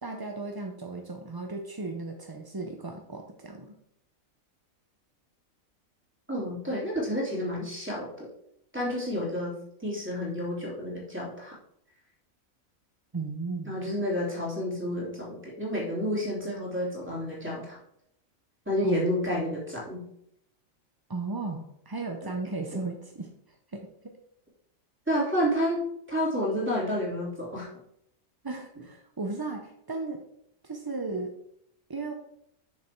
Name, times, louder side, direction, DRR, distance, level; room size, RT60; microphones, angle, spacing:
voice 1, 0.0-3.8 13.1-13.8 18.8-19.1 21.1-23.3 23.7-24.2 28.4-30.2 30.6-31.3 31.9-32.1, right 3 dB, 30° right, 3 dB, 0.4 m, -35 dB
voice 2, 6.3-8.3 8.7-9.5 9.8-11.5 13.6-17.8 18.6-20.0 22.2-22.3 22.7-22.8 25.1-25.8 26.1-27.7, equal, 10° right, -5 dB, 3.0 m, -30 dB
6.6 x 6.5 x 4.5 m, 0.73 s
omnidirectional pair, 1.4 m